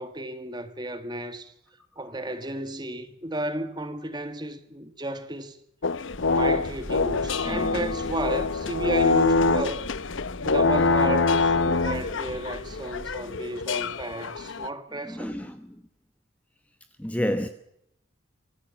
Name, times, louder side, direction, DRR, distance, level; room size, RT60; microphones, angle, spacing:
voice 1, 0.0-1.5 2.0-5.6 6.3-9.9 10.4-15.3, right 1 dB, 20° right, 1.8 m, -33 dB
sound 1, 5.8-14.7, left 3 dB, 70° left, 0.8 m, -25 dB
sound 2, 6.1-13.1, equal, 30° left, 6.1 m, -42 dB
voice 2, 7.4-7.9 15.0-15.8 17.0-17.5, equal, 5° left, 1.0 m, -30 dB
25.5 x 15.0 x 7.2 m
head